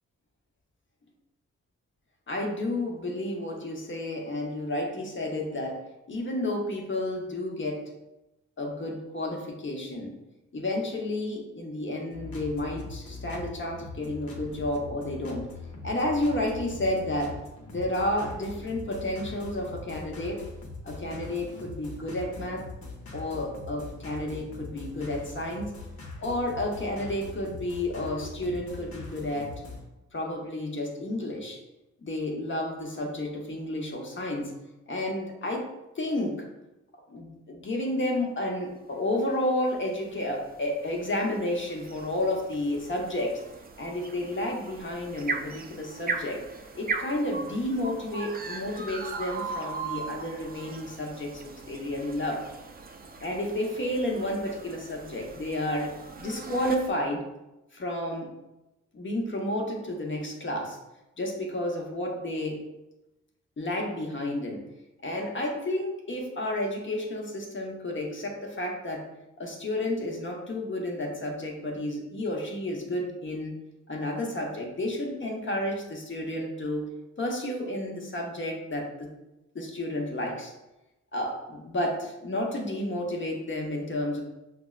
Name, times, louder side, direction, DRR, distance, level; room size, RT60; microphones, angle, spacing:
voice 1, 2.3-5.8 6.1-7.8 8.6-10.1 10.5-15.5 15.8-17.4 17.7-20.4 20.8-22.6 23.1-25.7 26.2-29.5 30.1-31.6 32.0-34.5 34.9-35.7 36.0-36.5 37.1-43.4 43.8-46.4 46.7-52.5 53.2-57.3 57.7-58.3 58.9-60.8 61.2-62.6 63.6-64.6 65.0-69.0 69.4-73.5 73.9-76.9 77.2-79.1 79.5-80.5 81.1-84.2, left 1 dB, 35° left, 0 dB, 1.0 m, -31 dB
sound 1, 12.1-29.8, left 3 dB, 60° left, 0.9 m, -42 dB
sound 2, 39.6-56.9, right 4 dB, 30° right, 0.5 m, -38 dB
5.6 x 2.1 x 2.4 m, 0.95 s
supercardioid pair, 45°, 32 cm